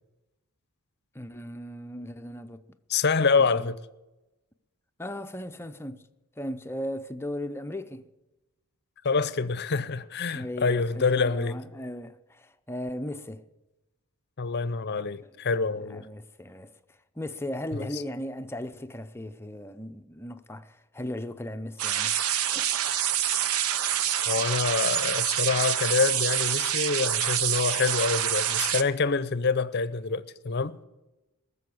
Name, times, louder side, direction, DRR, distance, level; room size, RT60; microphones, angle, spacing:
voice 1, 1.1-2.6 3.4-3.7 5.0-6.1 6.4-8.1 10.3-13.4 15.2-15.3 15.9-16.7 17.2-22.1 22.5-22.7, left 1 dB, 10° left, 0.6 m, -37 dB
voice 2, 2.9-3.8 9.0-11.6 14.4-16.1 17.7-17.9 24.3-30.8, left 4 dB, 50° left, 0.7 m, -26 dB
sound 1, 21.8-28.8, right 10 dB, 70° right, 0.7 m, -26 dB
19.5 x 7.0 x 8.5 m
head